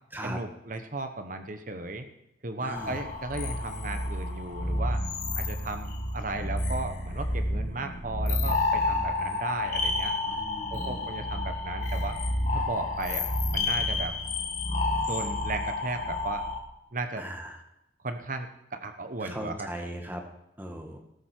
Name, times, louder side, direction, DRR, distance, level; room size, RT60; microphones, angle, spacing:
voice 1, 0.2-2.1 2.4-5.0 5.3-10.1 10.7-12.2 12.5-14.1 15.0-16.4 16.9-17.2 18.0-19.7, right 3 dB, 45° right, 7 dB, 1.1 m, -35 dB
voice 2, 2.6-3.0 10.2-11.5 17.2-17.6 19.2-20.2 20.6-21.0, right 1 dB, 10° right, 3 dB, 1.7 m, -39 dB
sound 1, 2.7-16.6, left 2 dB, 40° left, 2.0 m, -30 dB
18.5 x 8.2 x 4.5 m, 0.85 s
head